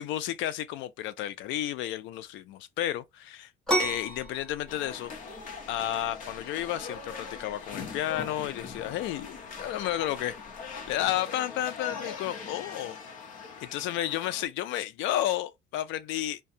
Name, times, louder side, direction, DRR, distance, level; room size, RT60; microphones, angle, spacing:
voice 1, 0.0-3.5 3.8-5.1 5.7-10.4 10.9-13.0 13.6-16.4, left 13 dB, 65° left, 0.4 m, -32 dB
sound 1, 3.7-11.1, equal, ahead, 1.0 m, -36 dB
sound 2, 4.7-14.4, left 5 dB, 40° left, 0.7 m, -41 dB
2.5 x 2.2 x 2.6 m
cardioid pair, 160°, 21 cm